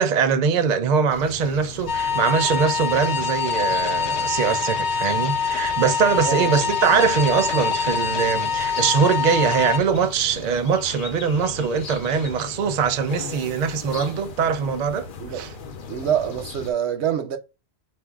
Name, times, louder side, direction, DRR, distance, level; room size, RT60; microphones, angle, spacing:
voice 1, 0.0-15.1 15.3-15.5, right 6 dB, 55° right, 0.5 m, -22 dB
sound 1, 1.1-16.7, left 5 dB, 55° left, 0.8 m, -38 dB
sound 2, 1.9-9.8, left 6 dB, 80° left, 1.0 m, -24 dB
voice 2, 6.2-6.7 15.2-15.5 15.9-17.4, right 9 dB, 85° right, 1.0 m, -26 dB
4.8 x 2.5 x 3.4 m
omnidirectional pair, 1.1 m